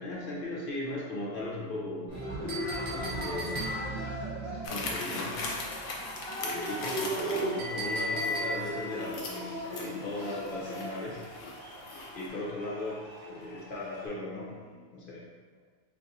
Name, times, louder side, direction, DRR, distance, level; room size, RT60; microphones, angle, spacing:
voice 1, 0.0-2.2 2.9-3.9 4.7-5.4 6.4-11.2 12.1-15.2 15.5-15.6, left 2 dB, 50° left, -5 dB, 0.7 m, -37 dB
Cheering, 2.1-14.1, right 1 dB, 20° left, 1.0 m, -38 dB
Chink clink, 2.5-4.1 7.6-8.9, left 1 dB, 40° right, 0.8 m, -35 dB
sound 1, 4.6-12.3, left 3 dB, 75° left, 1.0 m, -40 dB
2.6 x 2.5 x 4.1 m, 1.5 s
omnidirectional pair, 1.5 m